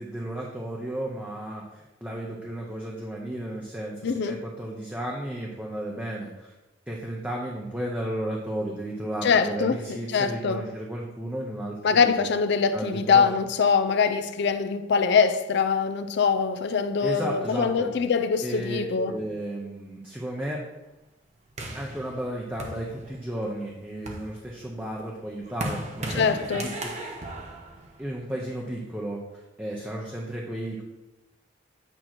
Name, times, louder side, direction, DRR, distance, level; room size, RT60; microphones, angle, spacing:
voice 1, 0.0-6.5 6.9-12.2 12.7-13.3 17.0-17.9 18.4-20.6 21.7-27.1 28.0-30.8, right 1 dB, 10° right, 0.7 m, -33 dB
voice 2, 4.0-4.4 9.2-9.8 10.1-10.7 11.8-19.1 26.2-26.7, left 5 dB, 60° left, 0.4 m, -23 dB
sound 1, 21.6-23.4 23.9-28.5, right 1 dB, 35° right, 1.0 m, -36 dB
8.7 x 3.0 x 5.9 m
head